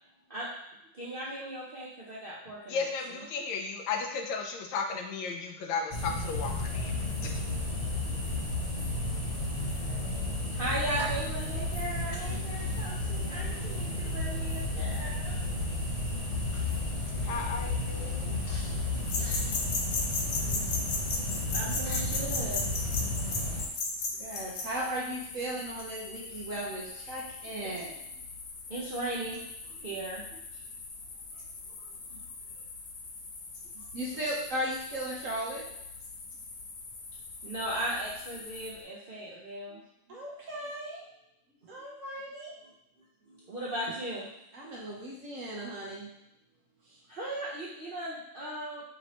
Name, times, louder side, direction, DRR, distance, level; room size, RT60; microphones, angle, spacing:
voice 1, 0.9-2.9 9.8-9.9 10.3-15.4 21.5-22.6 28.7-29.4 29.8-30.6 31.8-32.2 33.7-33.8 37.4-39.8 43.3-44.3 47.1-48.8, right 1 dB, 85° right, -7 dB, 0.4 m, -37 dB
voice 2, 2.7-7.4 17.2-18.4, left 5 dB, 85° left, 3 dB, 1.4 m, -35 dB
sound 1, 5.9-23.6, left 2 dB, 45° left, 0.5 m, -32 dB
sound 2, 19.0-38.8, left 3 dB, 65° left, 1.1 m, -38 dB
voice 3, 24.1-28.0 33.9-35.6 40.1-41.0 41.7-42.5 44.5-46.1, right 1 dB, 50° right, -4 dB, 1.1 m, -36 dB
5.1 x 3.1 x 2.9 m, 0.83 s
omnidirectional pair, 2.0 m